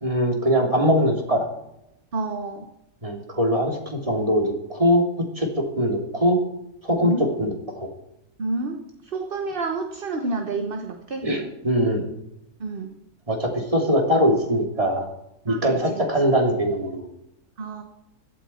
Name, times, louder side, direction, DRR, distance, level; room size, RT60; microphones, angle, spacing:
voice 1, 0.0-1.5 3.0-6.4 6.8-7.9 11.2-12.0 13.3-15.1 15.4-17.1, equal, 20° right, 1 dB, 2.8 m, -22 dB
voice 2, 2.1-2.7 7.0-7.3 8.4-11.3 12.6-12.9 15.5-15.9 17.6-17.8, right 3 dB, 40° right, 4 dB, 1.3 m, -29 dB
16.5 x 12.5 x 4.4 m, 0.84 s
omnidirectional pair, 1.5 m